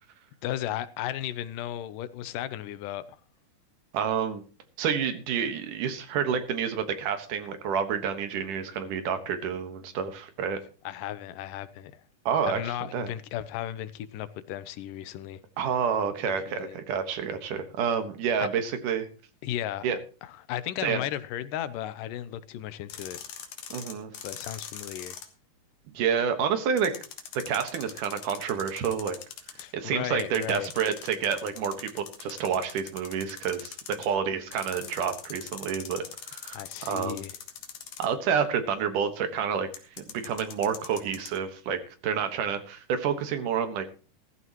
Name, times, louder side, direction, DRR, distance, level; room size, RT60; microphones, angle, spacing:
voice 1, 0.4-3.0 10.8-12.0 12.4-15.4 16.2-16.8 18.4-18.5 19.4-19.9 20.2-23.2 24.2-25.2 29.6-30.7 36.5-37.3, left 12 dB, 90° left, 2.4 m, -35 dB
voice 2, 3.9-4.4 4.8-10.6 12.3-13.1 15.6-19.1 19.8-20.0 20.8-21.0 23.7-24.1 25.9-26.9 27.3-29.2 29.7-37.2 38.0-39.7 40.0-43.8, right 7 dB, 80° right, 3.0 m, -29 dB
sound 1, 22.9-25.3 26.8-29.6 30.2-34.1 34.5-38.3 39.7-41.4, left 8 dB, 65° left, 2.8 m, -42 dB
15.5 x 14.5 x 3.0 m
omnidirectional pair, 3.7 m